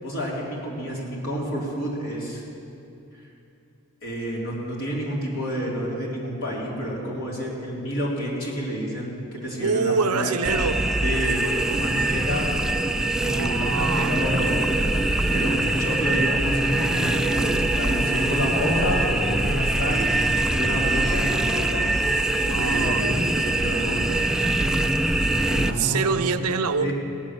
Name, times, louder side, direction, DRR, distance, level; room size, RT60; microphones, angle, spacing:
voice 1, 0.0-2.4 4.0-10.4 11.0-12.5 13.2-20.1 20.5-21.9 22.4-24.3 25.5-26.2 26.8-26.9, equal, 60° left, -4 dB, 3.7 m, -29 dB
voice 2, 9.6-10.9 13.3-14.2 21.1-21.8 22.5-23.5 25.7-26.9, right 5 dB, 80° right, 9 dB, 0.7 m, -26 dB
sound 1, 10.4-25.7, right 1 dB, 5° right, 0.4 m, -23 dB
18.0 x 8.6 x 7.5 m, 2.7 s
head